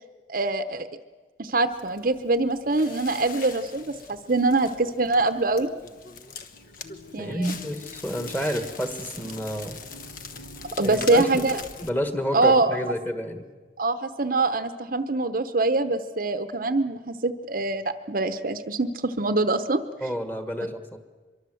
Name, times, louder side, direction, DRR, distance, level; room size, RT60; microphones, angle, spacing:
voice 1, 0.3-0.9 1.4-5.7 7.1-7.5 10.8-11.6 12.3-12.8 13.8-19.8, right 3 dB, 50° right, 10 dB, 0.9 m, -24 dB
Crackle, 1.7-11.9, left 5 dB, 45° left, 1.2 m, -42 dB
voice 2, 7.2-9.8 10.7-11.5 11.8-13.5 20.0-21.0, equal, 10° left, 8 dB, 1.6 m, -29 dB
24.0 x 23.0 x 7.8 m, 1.3 s
head